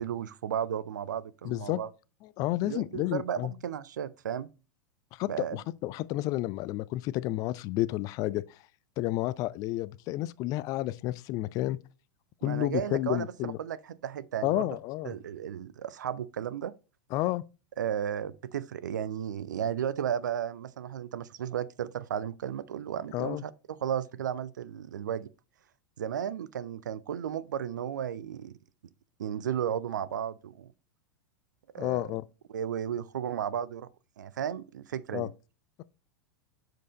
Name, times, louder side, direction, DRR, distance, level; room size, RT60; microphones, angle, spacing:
voice 1, 0.0-1.9 2.6-4.5 5.3-5.6 12.4-14.7 15.0-16.7 17.8-25.3 26.0-28.5 29.2-30.7 31.7-32.1 32.5-33.9 34.2-35.3, right 9 dB, 65° right, 0.5 m, -34 dB
voice 2, 1.4-1.8 2.4-3.5 5.1-8.4 9.0-11.8 12.4-13.6 14.4-15.1 17.1-17.4 23.1-23.4 31.8-32.2 35.1-35.3, left 16 dB, 35° left, 0.4 m, -31 dB
7.1 x 4.6 x 4.1 m
figure-of-eight pair, 90°, 11 cm